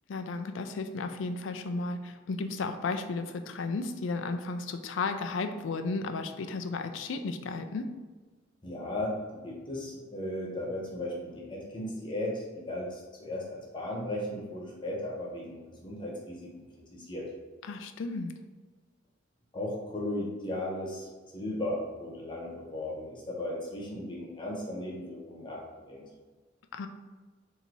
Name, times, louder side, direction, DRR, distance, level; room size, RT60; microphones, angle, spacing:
voice 1, 0.1-7.9 17.6-18.3 26.7-26.9, left 3 dB, 85° left, 8 dB, 0.4 m, -34 dB
voice 2, 8.6-9.2 9.4-16.6 16.9-17.3 19.5-21.1 21.3-26.1, left 1 dB, 25° left, -3 dB, 1.0 m, -36 dB
3.9 x 2.8 x 4.5 m, 1.3 s
head